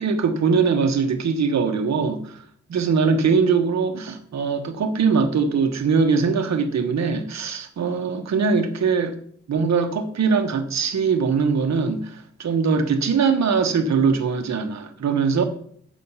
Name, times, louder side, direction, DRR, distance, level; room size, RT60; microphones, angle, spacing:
voice 1, 0.0-2.4 2.7-9.2 9.5-15.4, right 5 dB, 65° right, 6 dB, 1.2 m, -21 dB
8.3 x 6.4 x 5.6 m, 0.62 s
wide cardioid pair, 165°, 30 cm